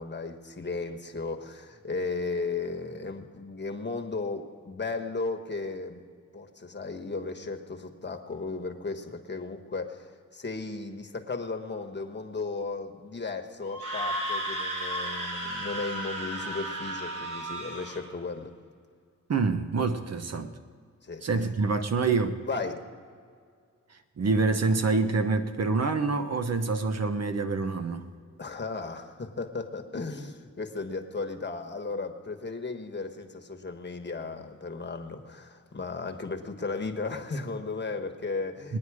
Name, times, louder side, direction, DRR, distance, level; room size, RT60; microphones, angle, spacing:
voice 1, 0.0-6.0 6.3-18.5 21.0-21.3 22.5-22.8 28.4-38.8, left 3 dB, 35° left, 1.3 m, -35 dB
Screaming, 13.6-18.0, right 1 dB, 85° right, 3.2 m, -34 dB
voice 2, 19.3-20.5 21.2-22.4 24.2-28.1 38.7-38.8, right 4 dB, 55° right, 1.0 m, -26 dB
20.5 x 9.6 x 4.9 m
cardioid pair, 75°, 31 cm